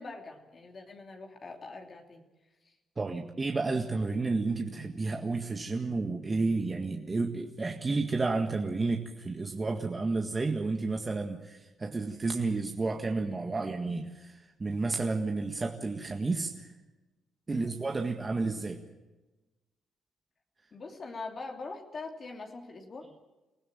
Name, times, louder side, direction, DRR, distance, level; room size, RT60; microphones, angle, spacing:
voice 1, 0.0-2.3 2.6-2.8 17.5-17.8 20.7-23.1, left 3 dB, 40° left, 2 dB, 2.8 m, -43 dB
voice 2, 3.0-16.7 17.5-18.8, right 3 dB, 25° right, 3 dB, 1.8 m, -31 dB
23.5 x 16.0 x 8.9 m, 1.1 s
cardioid pair, 90°, 0 cm